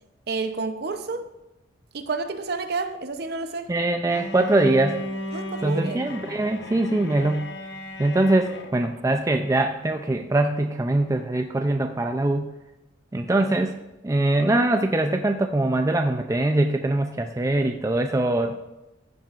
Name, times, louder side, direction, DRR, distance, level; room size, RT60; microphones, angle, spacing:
voice 1, 0.3-1.3 1.9-3.7 5.3-6.1, right 4 dB, 55° right, 8 dB, 0.7 m, -30 dB
voice 2, 3.7-5.0 5.6-7.5 8.0-12.5 13.1-13.7 14.0-18.6, right 2 dB, 15° right, 5 dB, 0.4 m, -22 dB
Bowed string instrument, 4.1-9.0, left 1 dB, 60° left, 0.9 m, -35 dB
15.0 x 7.3 x 2.5 m, 0.96 s
head